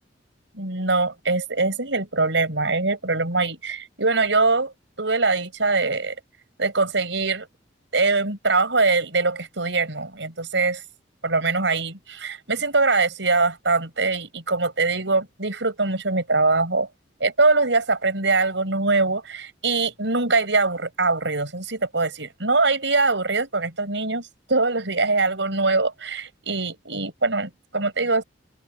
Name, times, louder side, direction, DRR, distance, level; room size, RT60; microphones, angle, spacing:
voice 1, 0.5-4.7 5.0-6.1 6.6-7.5 7.9-10.8 11.2-16.9 17.2-28.2, right 3 dB, 75° right, 6.3 m, -23 dB
open air
head